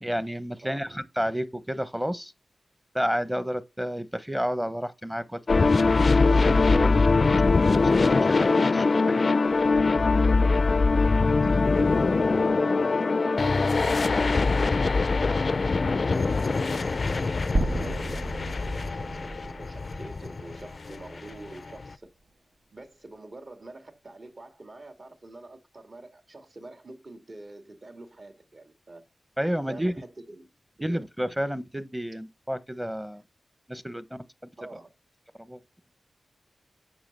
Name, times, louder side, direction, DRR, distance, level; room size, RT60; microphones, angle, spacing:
voice 1, 0.0-2.3 2.9-7.3 8.4-9.3 29.4-29.9 30.8-33.2 33.7-34.2 35.4-35.6, equal, 5° right, 1.0 m, -31 dB
sound 1, 5.5-21.9, left 3 dB, 50° left, 0.4 m, -22 dB
voice 2, 11.3-15.1 16.1-22.1 22.7-29.0 29.7-30.5 30.8-31.1 34.6-34.9, right 2 dB, 45° right, 2.4 m, -46 dB
sound 2, 17.5-21.8, right 1 dB, 65° right, 2.4 m, -33 dB
8.8 x 5.7 x 6.8 m
wide cardioid pair, 80°, 0 cm